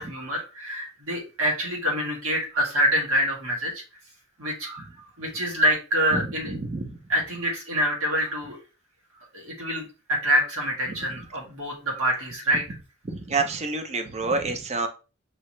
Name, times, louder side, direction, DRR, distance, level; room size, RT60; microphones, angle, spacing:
voice 1, 0.0-3.8 4.4-4.9 5.2-6.5 7.1-8.6 9.3-12.6, equal, 70° right, -1 dB, 1.8 m, -26 dB
voice 2, 6.5-6.9 13.1-14.9, right 3 dB, 30° right, 6 dB, 0.6 m, -27 dB
5.5 x 2.8 x 3.1 m, 0.33 s
head